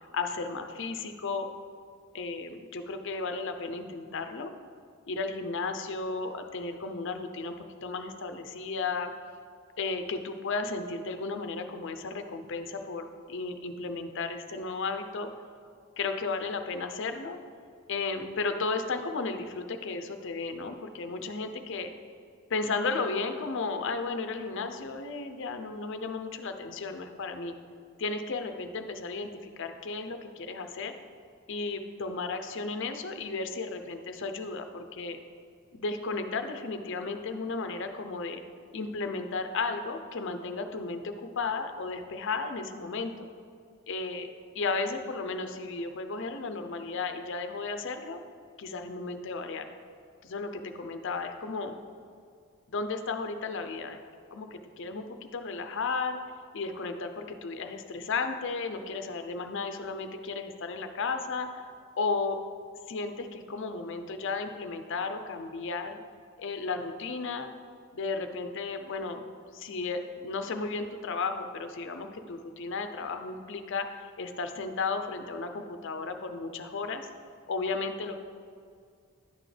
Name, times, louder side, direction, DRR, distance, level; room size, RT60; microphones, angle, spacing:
voice 1, 0.1-1.5 2.1-4.5 5.1-9.1 9.8-15.3 16.0-17.4 17.9-21.9 22.5-27.5 28.0-30.9 31.5-35.2 35.7-38.4 38.7-43.1 43.9-44.3 44.5-48.2 48.6-49.7 50.2-51.7 52.7-54.0 54.3-56.2 56.5-61.5 62.0-62.4 62.9-66.0 66.4-67.5 67.9-69.2 69.5-73.9 74.2-77.1 77.5-78.2, left 4 dB, 60° left, 7 dB, 0.6 m, -34 dB
11.0 x 6.3 x 3.3 m, 2.3 s
head